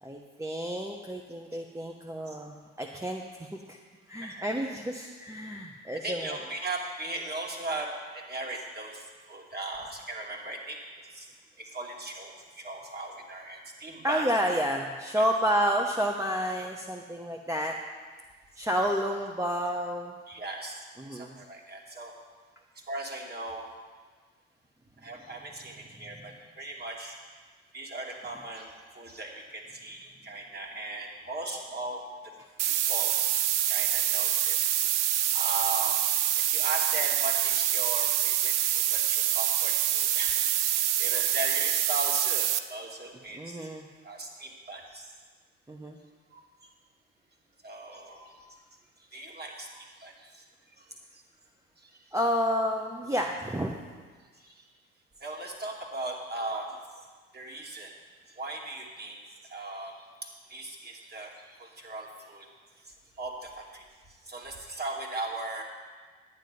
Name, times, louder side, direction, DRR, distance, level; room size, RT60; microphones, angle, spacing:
voice 1, 0.0-3.8 4.1-6.4 14.0-17.8 18.6-20.1 21.0-21.4 43.3-43.9 45.7-46.0 52.1-53.7, equal, 10° right, 1 dB, 1.0 m, -30 dB
voice 2, 6.0-7.9 8.1-10.8 11.1-11.3 11.6-14.3 15.1-15.2 20.3-22.1 22.9-23.7 25.0-27.2 27.7-32.0 32.7-33.1 33.7-34.7 35.1-36.0 36.5-43.6 44.0-45.1 46.3-46.4 47.6-48.3 49.1-50.4 54.4-54.5 55.2-56.7 57.3-57.9 58.4-59.2 59.5-59.9 60.2-62.5 63.2-63.8 64.3-65.6, right 2 dB, 30° right, -1 dB, 2.7 m, -38 dB
sound 1, 32.6-42.6, right 12 dB, 85° right, 0.6 m, -26 dB
11.0 x 9.3 x 5.3 m, 1.5 s
hypercardioid pair, 55°, 34 cm